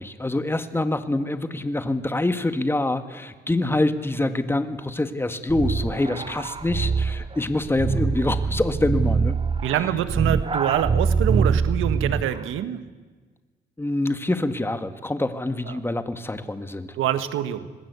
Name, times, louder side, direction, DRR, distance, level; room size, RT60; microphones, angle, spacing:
voice 1, 0.0-9.4 13.8-16.9, left 2 dB, 10° left, 9 dB, 1.9 m, -25 dB
sound 1, 5.5-12.4, right 5 dB, 25° right, 1.1 m, -24 dB
voice 2, 9.6-12.8 17.0-17.7, right 11 dB, 90° right, 11 dB, 1.7 m, -25 dB
26.5 x 20.0 x 8.4 m, 1.4 s
cardioid pair, 90°, 20 cm